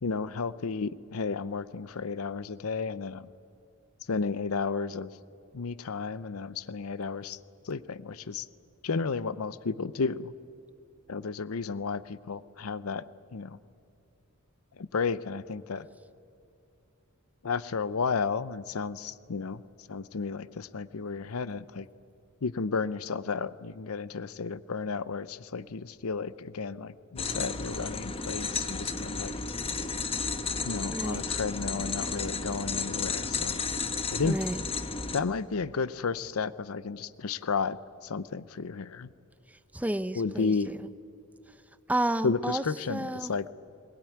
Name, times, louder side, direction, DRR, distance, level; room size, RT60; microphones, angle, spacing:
voice 1, 0.0-3.3 4.1-5.1 5.5-7.4 7.6-8.5 8.8-10.3 11.1-13.0 13.3-13.6 14.7-15.9 17.4-21.9 22.4-29.3 30.6-33.6 34.1-34.4 35.1-39.1 40.2-40.7 42.2-43.5, left 4 dB, 80° left, 16 dB, 0.7 m, -32 dB
sound 1, 27.2-35.2, left 4 dB, 25° left, 1.1 m, -33 dB
voice 2, 30.9-31.3 34.2-34.6 39.5-40.9 41.5-42.6 42.9-43.4, right 1 dB, 5° right, 13 dB, 0.6 m, -32 dB
22.0 x 20.0 x 9.3 m, 2.7 s
head